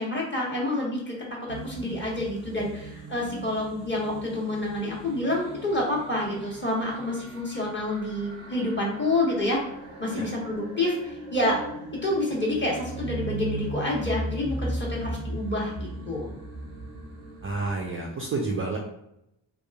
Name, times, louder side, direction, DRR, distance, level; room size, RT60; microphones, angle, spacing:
voice 1, 0.0-9.6 10.0-11.6 12.0-16.3, left 1 dB, 25° left, -4 dB, 1.2 m, -28 dB
sound 1, 1.5-17.9, right 2 dB, 90° right, 0.6 m, -38 dB
voice 2, 17.4-18.8, right 3 dB, 30° right, -1 dB, 0.5 m, -29 dB
2.9 x 2.4 x 2.3 m, 0.82 s
hypercardioid pair, 45°, 48 cm